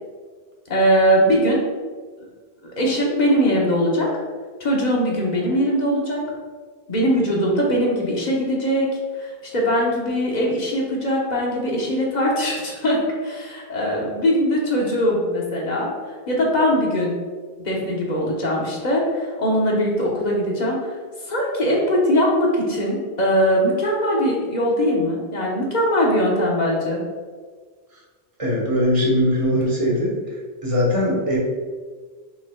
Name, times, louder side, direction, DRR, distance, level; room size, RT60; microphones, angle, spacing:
voice 1, 0.7-1.6 2.6-4.1 4.6-6.2 6.9-8.9 9.2-15.9 16.3-17.1 17.6-20.8 21.3-27.0, equal, 45° left, -3 dB, 1.1 m, -21 dB
voice 2, 28.4-30.1 30.6-31.4, left 1 dB, 35° right, -4 dB, 1.2 m, -20 dB
6.3 x 3.8 x 2.2 m, 1.5 s
omnidirectional pair, 1.1 m